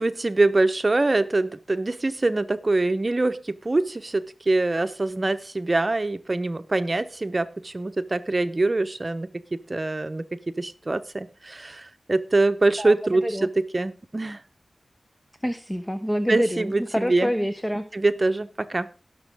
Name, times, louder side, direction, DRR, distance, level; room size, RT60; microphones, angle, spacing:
voice 1, 0.0-13.5 13.7-14.4 16.3-17.5 17.9-18.9, right 2 dB, 35° right, 11 dB, 1.0 m, -24 dB
voice 2, 12.8-13.5 15.4-17.9, equal, 10° left, 8 dB, 1.0 m, -27 dB
18.5 x 6.2 x 3.6 m, 0.34 s
wide cardioid pair, 75°, 0 cm